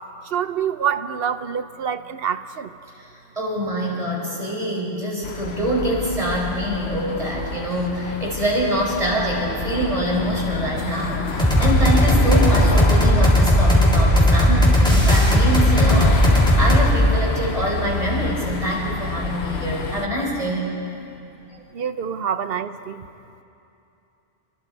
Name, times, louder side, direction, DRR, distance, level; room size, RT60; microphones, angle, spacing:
voice 1, 0.3-2.7 21.7-23.1, right 8 dB, 65° right, 12 dB, 0.9 m, -26 dB
voice 2, 3.3-20.7 21.5-21.6, equal, 35° right, -3 dB, 5.1 m, -25 dB
sound 1, 5.2-20.1, left 5 dB, 75° left, 1.3 m, -27 dB
sound 2, 11.4-16.9, equal, 5° left, 3.4 m, -16 dB
28.5 x 20.5 x 4.7 m, 2.8 s
omnidirectional pair, 1.1 m